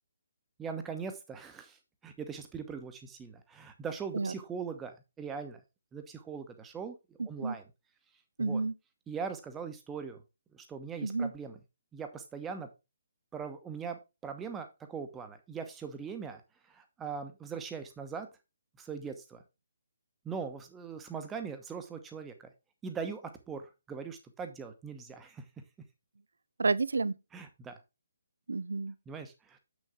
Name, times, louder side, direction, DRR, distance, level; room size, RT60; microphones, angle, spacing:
voice 1, 0.6-1.8 2.0-5.6 5.9-7.0 7.2-7.6 8.4-8.6 9.1-10.2 10.5-11.6 11.9-12.7 13.3-16.4 16.7-18.3 18.8-19.4 20.2-22.5 22.8-23.6 23.9-25.4 27.3-27.8 29.1-29.6, right 6 dB, 10° right, 1.0 m, -40 dB
voice 2, 8.4-8.7 11.0-11.3 26.6-27.2 28.5-28.9, right 3 dB, 65° right, 0.4 m, -30 dB
7.5 x 6.3 x 3.7 m
figure-of-eight pair, 135°, 0 cm